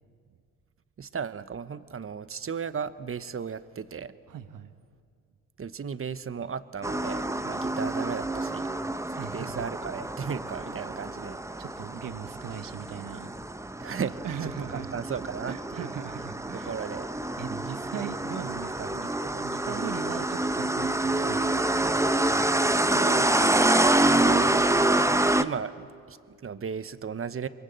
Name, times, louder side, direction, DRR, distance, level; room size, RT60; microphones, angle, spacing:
voice 1, 1.0-4.1 5.6-8.7 9.1-11.4 13.8-16.0 16.5-17.1 18.5-19.0 19.3-20.0 22.9-24.8 25.4-27.5, right 6 dB, 35° right, 13 dB, 1.2 m, -36 dB
voice 2, 4.3-4.7 9.2-9.6 11.6-13.3 14.2-15.0 15.5-16.7 17.4-19.1 19.4-21.8, right 8 dB, 55° right, 10 dB, 1.3 m, -39 dB
sound 1, 6.8-25.4, right 1 dB, 5° right, 0.9 m, -27 dB
23.0 x 22.5 x 7.8 m, 2.3 s
hypercardioid pair, 55°, 39 cm